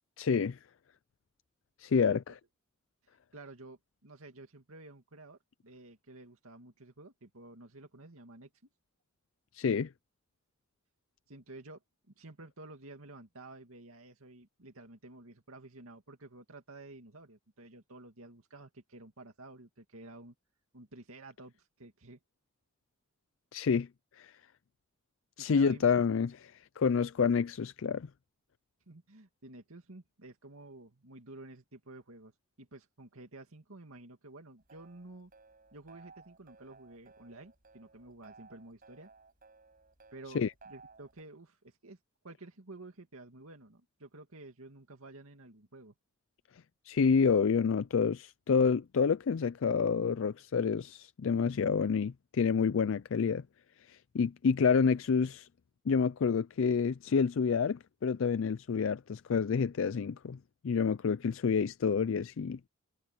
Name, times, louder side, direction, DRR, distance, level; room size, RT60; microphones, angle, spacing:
voice 1, 0.2-0.6 1.8-2.2 9.5-9.9 23.5-23.9 24.2-24.3 25.4-28.1 40.3-40.5 46.8-53.4 53.9-55.5 55.9-60.4 60.6-62.6, left 6 dB, 65° left, 0.4 m, -28 dB
voice 2, 3.3-8.5 11.3-11.8 12.2-20.3 20.7-22.2 25.4-25.9 28.9-32.3 32.6-35.3 35.7-39.1 40.1-42.0 42.2-45.9, right 2 dB, 85° right, 2.3 m, -51 dB
sound 1, 34.6-41.2, right 4 dB, 40° right, 7.5 m, -58 dB
head